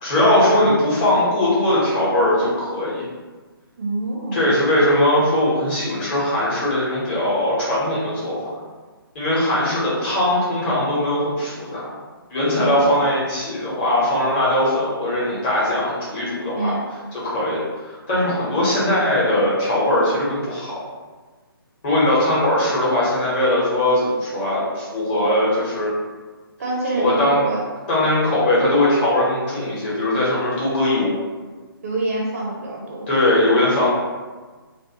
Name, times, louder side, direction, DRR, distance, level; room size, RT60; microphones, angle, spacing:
voice 1, 0.0-3.0 4.3-8.5 9.1-11.9 12.3-16.7 17.1-17.6 17.8-20.7 21.8-25.9 27.0-27.4 27.9-31.1 33.1-33.9, left 1 dB, 25° left, -9 dB, 1.0 m, -20 dB
voice 2, 3.8-4.5 12.5-12.8 16.6-16.9 26.6-27.7 31.8-33.1, right 2 dB, 35° right, -3 dB, 0.5 m, -26 dB
2.5 x 2.1 x 2.8 m, 1.3 s
figure-of-eight pair, 145°, 13 cm